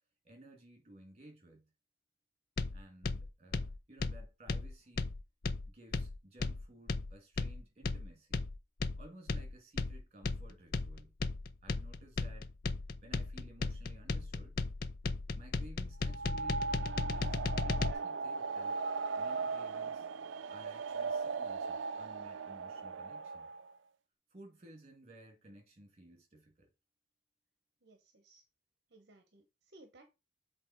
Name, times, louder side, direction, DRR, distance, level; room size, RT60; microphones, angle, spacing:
voice 1, 0.2-1.6 2.7-5.1 5.7-8.5 9.0-11.1 11.6-12.5 13.0-14.6 15.3-18.8 19.2-20.1 20.5-23.5 24.3-26.7, right 1 dB, 35° right, 2.6 m, -57 dB
sound 1, 2.6-17.9, left 3 dB, 50° left, 0.5 m, -36 dB
sound 2, 16.0-23.7, right 4 dB, 75° right, 0.4 m, -38 dB
voice 2, 27.8-28.4 28.9-30.0, right 2 dB, 55° right, 1.0 m, -60 dB
7.6 x 4.2 x 4.4 m
head